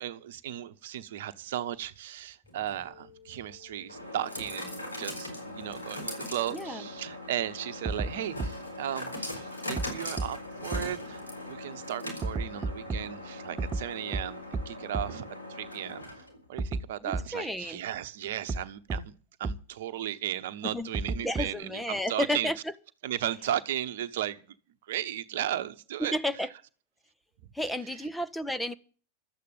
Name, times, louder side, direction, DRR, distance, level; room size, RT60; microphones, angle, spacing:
voice 1, 0.0-19.1 19.4-22.5 23.0-24.5 24.8-26.2, right 11 dB, 55° right, 1.0 m, -36 dB
sound 1, 2.5-16.4, left 1 dB, 80° left, 4.8 m, -40 dB
voice 2, 6.5-6.8 17.0-17.8 20.6-20.9 21.2-22.6 26.0-26.5 27.5-28.7, left 1 dB, 5° left, 0.8 m, -32 dB
sound 2, 7.9-8.1 8.4-8.5 9.8-9.9 10.2-10.3 10.7-10.8 12.2-13.0 13.6-13.8 14.1-14.2 14.5-14.6 14.9-15.0 16.6-16.8 17.1-17.2 18.5-18.6 18.9-19.0 19.4-19.5 20.9-21.6, right 3 dB, 25° right, 1.0 m, -30 dB
13.0 x 8.5 x 9.0 m
figure-of-eight pair, 90°, 0 cm